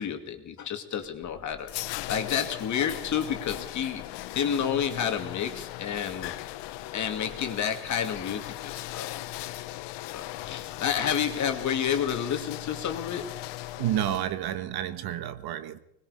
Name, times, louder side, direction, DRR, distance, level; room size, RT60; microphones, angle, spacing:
voice 1, 0.0-4.1 4.3-6.3 6.9-9.2 10.1-13.4, left 8 dB, 40° left, 2.6 m, -30 dB
sound 1, 1.0-14.6, left 16 dB, 65° left, 1.0 m, -38 dB
voice 2, 13.8-15.8, right 11 dB, 55° right, 1.4 m, -30 dB
25.5 x 20.5 x 5.0 m
cardioid pair, 150°, 45 cm